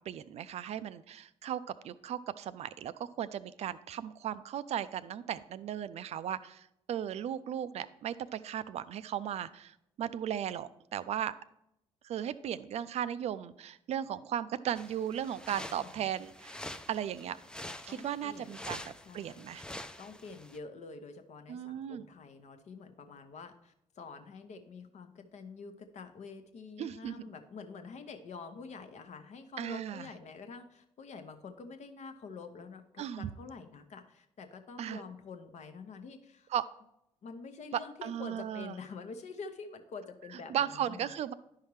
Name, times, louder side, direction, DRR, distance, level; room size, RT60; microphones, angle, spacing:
voice 1, 0.1-11.3 12.0-16.6 16.9-17.4 17.8-19.6 21.5-22.0 26.8-27.3 29.6-30.1 33.0-33.3 34.8-35.0 36.5-36.6 38.0-38.7 40.5-41.3, right 10 dB, 45° right, 15 dB, 0.4 m, -36 dB
sound 1, 14.7-20.6, left 1 dB, 5° left, 0.5 m, -46 dB
voice 2, 15.5-16.1 17.9-18.7 19.1-19.5 20.0-36.5 37.2-41.1, left 4 dB, 50° left, 7 dB, 0.9 m, -47 dB
11.0 x 5.7 x 3.2 m, 0.81 s
figure-of-eight pair, 45°, 15 cm